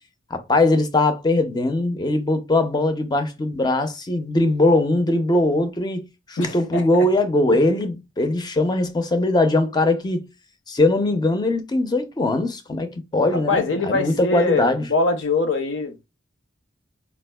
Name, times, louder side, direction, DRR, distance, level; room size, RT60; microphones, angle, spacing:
voice 1, 0.3-10.3 10.7-14.8, left 2 dB, 20° left, 0.5 m, -21 dB
voice 2, 6.4-7.1 13.3-16.1, left 3 dB, 70° left, 0.7 m, -23 dB
4.1 x 2.3 x 2.2 m
head